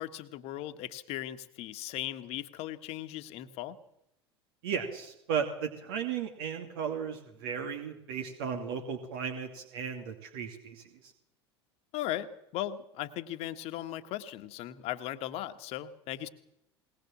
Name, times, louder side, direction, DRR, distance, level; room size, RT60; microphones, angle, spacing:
voice 1, 0.0-3.8 11.9-16.3, left 13 dB, 50° left, 10 dB, 1.6 m, -38 dB
voice 2, 4.6-11.1, right 7 dB, 60° right, 5 dB, 2.6 m, -35 dB
20.5 x 20.0 x 7.4 m, 0.81 s
figure-of-eight pair, 75°, 14 cm